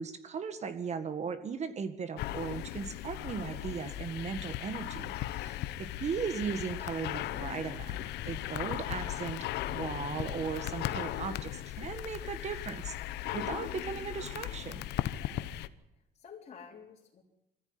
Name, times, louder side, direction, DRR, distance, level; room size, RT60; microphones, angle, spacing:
voice 1, 0.0-8.0 8.3-12.9 13.3-14.9, right 6 dB, 40° right, 9 dB, 1.8 m, -37 dB
sound 1, 2.2-15.7, left 14 dB, 85° left, 1.0 m, -37 dB
voice 2, 5.5-5.8 15.0-15.6 16.1-17.2, left 6 dB, 45° left, -3 dB, 3.8 m, -52 dB
21.5 x 14.5 x 9.7 m, 0.91 s
cardioid pair, 110°, 17 cm